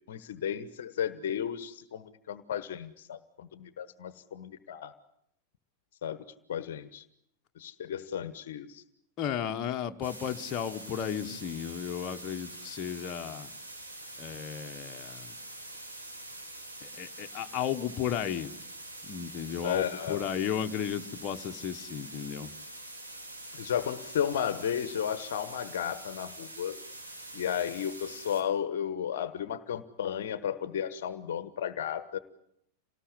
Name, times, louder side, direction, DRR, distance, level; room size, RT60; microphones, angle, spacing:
voice 1, 0.1-4.9 6.0-6.2 6.5-7.0 7.6-8.8 19.6-20.2 23.5-26.8 27.3-32.2, left 9 dB, 55° left, 14 dB, 1.2 m, -34 dB
voice 2, 9.2-13.5 14.2-15.4 16.8-18.5 19.0-22.5, left 9 dB, 35° left, 4 dB, 1.5 m, -34 dB
sound 1, 10.0-28.4, right 1 dB, 85° right, 5.0 m, -45 dB
28.0 x 19.0 x 9.8 m, 0.76 s
figure-of-eight pair, 90°, 0 cm